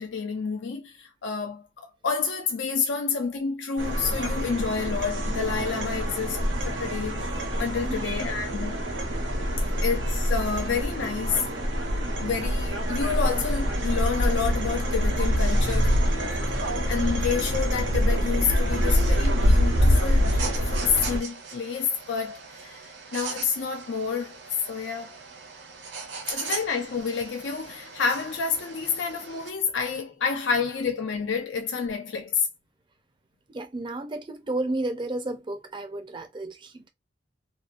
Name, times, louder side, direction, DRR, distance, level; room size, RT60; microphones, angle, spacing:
voice 1, 0.0-8.8 9.8-11.5 12.2-16.0 16.9-22.8 23.1-24.4 24.7-25.2 26.3-32.5, left 5 dB, 75° left, 0.5 m, -29 dB
sound 1, 3.8-21.2, equal, 90° right, 0.9 m, -25 dB
voice 2, 7.8-8.3 33.5-36.9, right 2 dB, 25° right, 0.5 m, -32 dB
sound 2, 18.7-29.5, right 5 dB, 65° right, 0.6 m, -40 dB
2.8 x 2.2 x 2.5 m
head